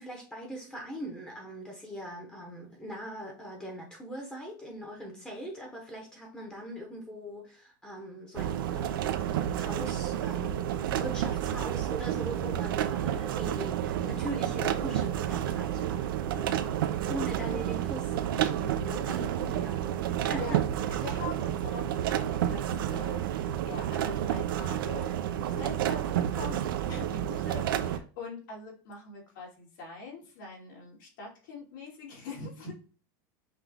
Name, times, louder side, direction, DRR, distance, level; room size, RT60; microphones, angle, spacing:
voice 1, 0.0-9.3 9.6-20.6, right 1 dB, 5° left, 0.9 m, -41 dB
sound 1, 8.3-28.0, right 11 dB, 90° right, 0.5 m, -30 dB
voice 2, 19.1-19.5 20.3-20.6 20.9-32.8, left 4 dB, 70° left, 2.4 m, -43 dB
5.7 x 2.3 x 3.4 m
supercardioid pair, 165°, 11 cm